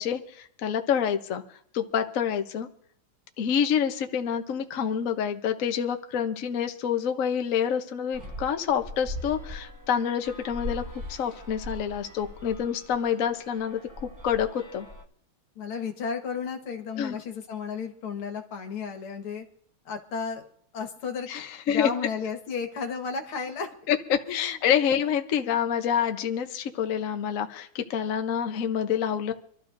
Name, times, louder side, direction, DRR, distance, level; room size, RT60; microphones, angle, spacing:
voice 1, 0.0-1.4 1.7-2.7 3.4-10.8 11.1-14.9 17.0-17.2 21.3-21.9 23.9-29.3, left 8 dB, 50° left, 6 dB, 1.0 m, -27 dB
sound 1, 8.1-15.0, equal, 20° right, 0.6 m, -40 dB
voice 2, 15.6-19.5 19.9-20.5 20.7-21.3 21.7-23.7 24.3-24.6, left 5 dB, 80° left, 4 dB, 2.4 m, -33 dB
26.5 x 13.0 x 2.6 m, 0.63 s
omnidirectional pair, 2.4 m